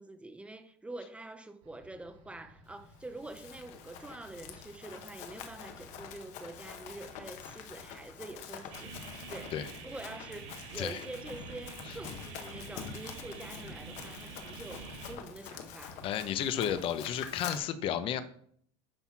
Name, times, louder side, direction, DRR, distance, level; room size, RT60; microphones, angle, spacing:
voice 1, 0.0-16.1, right 2 dB, 10° right, 0.6 m, -46 dB
sound 1, 1.6-17.4, equal, 85° right, 3.3 m, -58 dB
Run, 3.0-17.6, left 8 dB, 50° left, 1.3 m, -46 dB
sound 2, 8.7-15.1, right 4 dB, 70° right, 3.0 m, -47 dB
voice 2, 16.0-18.2, left 9 dB, 35° left, 0.7 m, -32 dB
9.9 x 4.2 x 5.9 m
cardioid pair, 155°, 15 cm